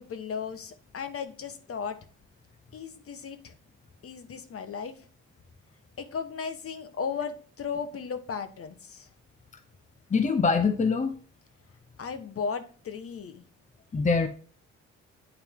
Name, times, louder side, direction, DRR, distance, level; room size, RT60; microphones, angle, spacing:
voice 1, 0.0-2.0 2.7-3.5 4.0-5.1 6.0-9.1 12.0-13.4, left 6 dB, 50° left, 10 dB, 1.2 m, -36 dB
voice 2, 10.1-11.1 13.9-14.3, left 4 dB, 25° left, 9 dB, 0.8 m, -23 dB
9.2 x 4.3 x 3.6 m, 0.39 s
cardioid pair, 90°, 30 cm